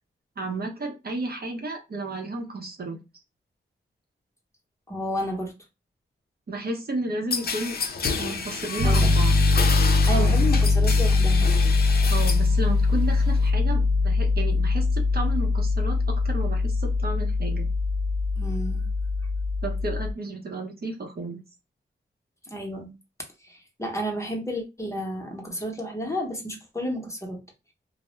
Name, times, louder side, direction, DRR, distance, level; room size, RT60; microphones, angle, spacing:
voice 1, 0.4-3.0 6.5-7.8 8.2-9.4 10.1-10.4 12.1-17.7 19.6-21.4, right 2 dB, 50° right, 0.7 m, -32 dB
voice 2, 4.9-5.5 8.8-9.1 9.8-11.6 18.4-18.9 22.4-22.9 23.4-27.4, equal, 15° left, 0.8 m, -31 dB
sound 1, 7.3-12.5 12.9-13.5, left 5 dB, 50° left, 0.5 m, -30 dB
Piano, 8.8-20.1, left 3 dB, 85° right, 0.5 m, -22 dB
2.2 x 2.0 x 3.0 m
cardioid pair, 45°, 21 cm